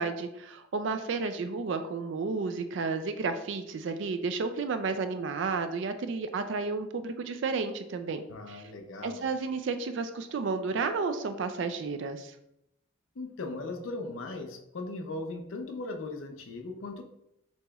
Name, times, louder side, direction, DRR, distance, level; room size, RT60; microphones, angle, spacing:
voice 1, 0.0-8.6 9.0-12.4, right 4 dB, 65° right, 9 dB, 0.4 m, -32 dB
voice 2, 8.3-9.3 13.2-17.0, left 2 dB, 80° left, 5 dB, 0.6 m, -38 dB
6.8 x 2.9 x 2.3 m, 0.81 s
head